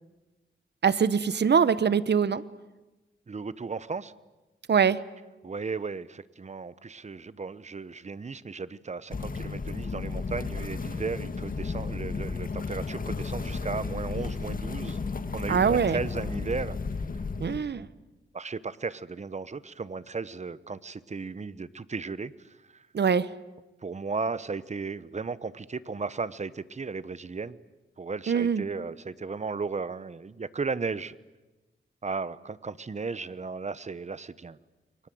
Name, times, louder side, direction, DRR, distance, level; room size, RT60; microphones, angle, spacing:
voice 1, 0.8-2.4 4.7-5.0 15.5-16.0 17.4-17.8 22.9-23.3 28.3-28.6, right 6 dB, 60° right, 16 dB, 1.1 m, -23 dB
voice 2, 3.3-4.1 5.4-15.0 15.3-16.8 17.7-17.9 18.3-22.9 23.8-27.6 28.0-31.1 32.0-34.6, right 4 dB, 35° right, 16 dB, 1.0 m, -35 dB
sound 1, 9.1-17.6, left 4 dB, 45° left, 1.8 m, -33 dB
29.5 x 23.5 x 7.9 m, 1.1 s
cardioid pair, 80°, 20 cm